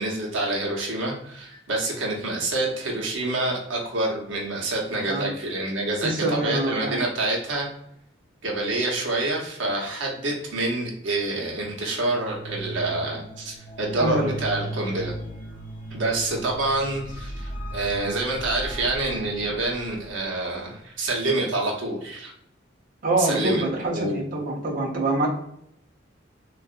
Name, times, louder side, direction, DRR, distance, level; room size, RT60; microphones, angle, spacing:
voice 1, 0.0-7.7 8.4-15.1 15.9-22.3 23.2-24.2, right 2 dB, 85° right, -1 dB, 0.8 m, -27 dB
voice 2, 6.0-7.1 14.0-14.3 23.0-25.3, right 2 dB, 45° right, -4 dB, 0.7 m, -25 dB
sound 1, 11.9-20.2, right 1 dB, 40° left, 0.7 m, -37 dB
3.6 x 2.4 x 2.4 m, 0.73 s
head